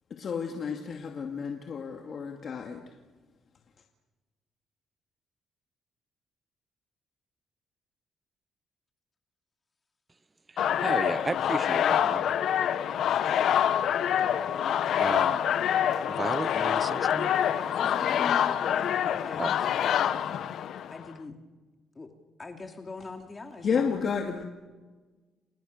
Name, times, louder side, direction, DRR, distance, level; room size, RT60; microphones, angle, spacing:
voice 1, 0.1-2.8 23.6-24.4, left 6 dB, 55° left, 2.4 m, -31 dB
voice 2, 10.5-12.4 15.0-15.4 16.1-17.3 19.4-19.5, right 3 dB, 25° right, 0.9 m, -34 dB
sound 1, 10.6-21.0, left 9 dB, 70° left, 1.3 m, -26 dB
voice 3, 17.7-20.1 20.9-21.4 21.9-22.1 22.4-24.0, left 3 dB, 30° left, 2.8 m, -42 dB
29.5 x 26.5 x 6.8 m
cardioid pair, 90°, 0 cm